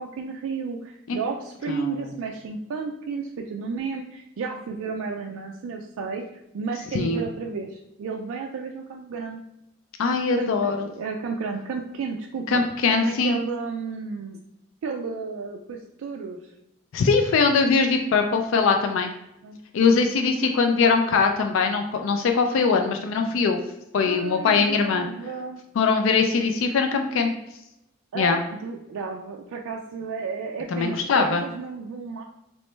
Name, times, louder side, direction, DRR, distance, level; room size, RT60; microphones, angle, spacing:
voice 1, 0.0-9.4 10.3-12.6 12.9-14.4 14.8-16.4 19.4-19.6 23.2-23.4 24.1-25.6 28.1-32.2, right 5 dB, 75° right, 1 dB, 0.3 m, -32 dB
voice 2, 1.7-2.1 6.9-7.2 10.0-10.8 12.5-13.4 16.9-19.1 19.7-23.6 23.9-25.0 25.8-27.3 28.2-28.4 30.7-31.4, left 4 dB, 65° left, 5 dB, 0.3 m, -21 dB
3.0 x 3.0 x 3.2 m, 0.86 s
head